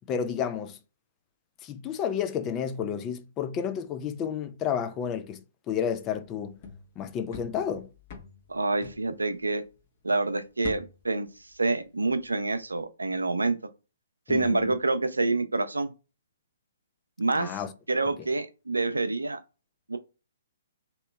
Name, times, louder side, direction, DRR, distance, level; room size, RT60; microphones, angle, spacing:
voice 1, 0.1-0.8 1.6-6.6 7.0-7.9 14.3-14.7 17.3-17.7, left 8 dB, 25° left, 0.4 m, -31 dB
sound 1, 6.2-9.9 10.2-12.3 12.5-12.8, left 5 dB, 40° left, 1.2 m, -46 dB
voice 2, 8.5-9.6 10.0-11.3 11.6-13.6 14.3-15.9 17.2-17.6 17.9-19.4 19.9-20.0, right 3 dB, 85° right, 0.5 m, -27 dB
3.0 x 2.9 x 3.4 m
figure-of-eight pair, 130°, 0 cm